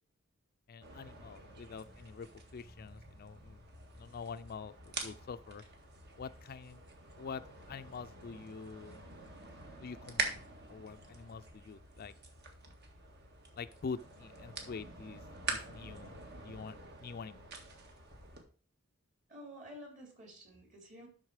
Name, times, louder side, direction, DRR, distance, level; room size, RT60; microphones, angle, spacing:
voice 1, 0.7-2.3 2.5-3.6 3.9-5.6 6.2-6.8 7.2-7.4 7.7-9.3 9.8-12.1 13.6-15.2 15.5-16.1 16.4-16.7 17.0-17.5, left 5 dB, 50° left, 12 dB, 0.4 m, -45 dB
sound 1, 0.8-18.4, right 3 dB, 55° right, 1.7 m, -45 dB
voice 2, 19.3-21.1, equal, 40° right, 1 dB, 3.2 m, -51 dB
12.0 x 4.1 x 4.8 m, 0.41 s
head